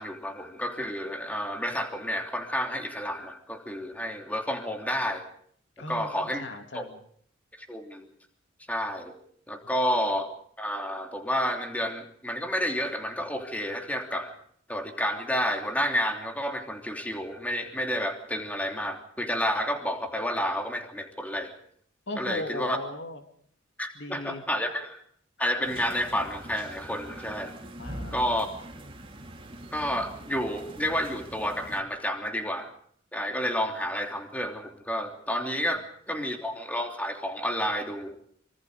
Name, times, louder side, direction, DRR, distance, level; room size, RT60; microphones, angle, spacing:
voice 1, 0.0-5.2 5.9-6.4 6.7-6.9 7.6-8.0 8.7-9.1 9.5-10.3 10.6-14.3 14.7-21.5 22.2-22.8 23.8-25.0 25.4-27.5 28.1-28.5 29.7-32.7 33.1-38.2, equal, 10° left, 4 dB, 3.0 m, -30 dB
voice 2, 5.8-6.1 6.4-7.0 22.1-23.2 24.0-24.4 27.8-28.3 35.7-35.8, left 1 dB, 60° left, 6 dB, 2.5 m, -37 dB
sound 1, 25.6-31.8, right 1 dB, 25° right, 3.0 m, -43 dB
25.0 x 24.5 x 4.9 m, 0.62 s
head